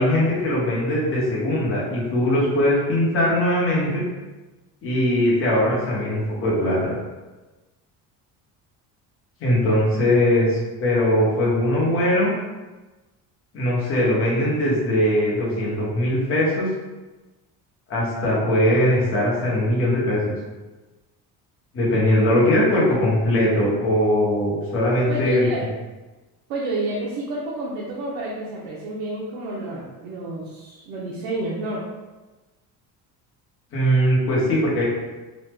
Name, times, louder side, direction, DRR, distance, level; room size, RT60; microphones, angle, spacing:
voice 1, 0.0-4.0 4.8-7.0 9.4-12.3 13.5-16.7 17.9-20.3 21.7-25.5 33.7-34.8, left 1 dB, 35° left, -5 dB, 0.8 m, -20 dB
voice 2, 25.1-25.6 26.5-31.8, right 2 dB, 85° right, -5 dB, 0.7 m, -29 dB
3.1 x 2.1 x 3.3 m, 1.2 s
cardioid pair, 175°, 38 cm